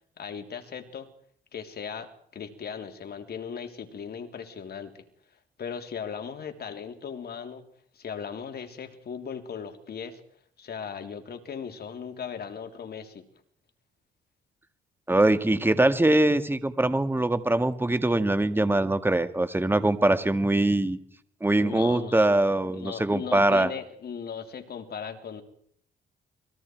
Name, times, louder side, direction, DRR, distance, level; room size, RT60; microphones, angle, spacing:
voice 1, 0.2-1.1 1.5-5.0 5.6-7.6 7.9-10.2 10.6-13.2 21.6-22.3 22.7-25.4, left 7 dB, 55° left, 6 dB, 3.4 m, -38 dB
voice 2, 15.1-21.0 21.4-23.7, right 2 dB, 10° right, 10 dB, 1.8 m, -23 dB
29.0 x 21.5 x 4.6 m, 0.64 s
cardioid pair, 90°, 20 cm